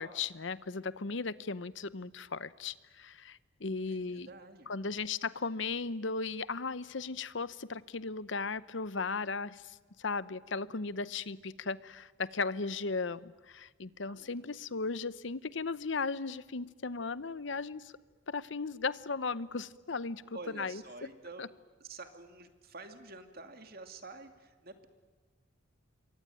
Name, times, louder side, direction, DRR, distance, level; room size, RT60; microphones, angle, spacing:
voice 1, 0.0-4.3 4.7-17.9 18.3-20.8 21.4-21.5, left 4 dB, 70° left, 17 dB, 0.8 m, -36 dB
voice 2, 3.9-4.7 14.1-14.5 20.3-21.5 21.8-24.9, right 3 dB, 50° right, 7 dB, 2.4 m, -49 dB
27.0 x 23.5 x 9.0 m, 1.3 s
head